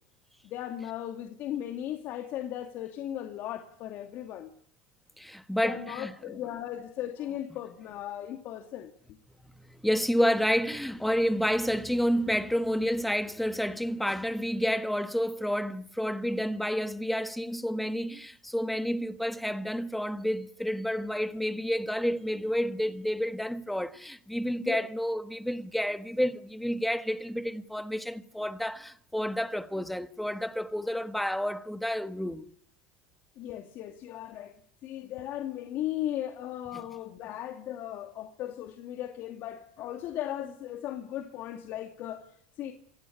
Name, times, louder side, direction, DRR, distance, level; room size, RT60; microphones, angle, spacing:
voice 1, 0.4-4.5 5.6-9.2 24.6-24.9 33.4-34.5 34.8-42.7, left 12 dB, 55° left, 2.3 m, -37 dB
voice 2, 5.2-6.1 9.7-32.4, equal, ahead, 1.5 m, -30 dB
27.0 x 16.0 x 8.6 m
supercardioid pair, 105°, 4 cm